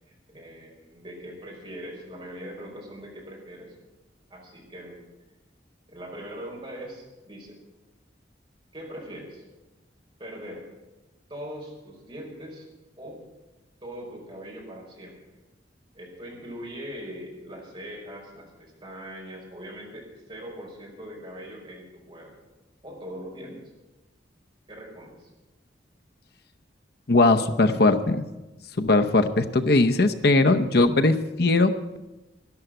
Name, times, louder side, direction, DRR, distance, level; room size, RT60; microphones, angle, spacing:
voice 1, 0.1-3.7 4.3-5.0 5.9-7.6 8.7-9.4 10.2-10.7 11.3-12.7 13.0-13.2 13.8-15.2 15.9-22.3 22.8-23.7 24.7-25.3, equal, 30° right, -2 dB, 5.1 m, -41 dB
voice 2, 27.1-28.2 28.8-32.0, left 2 dB, 60° left, 7 dB, 0.8 m, -20 dB
13.0 x 11.5 x 7.9 m, 1.1 s
head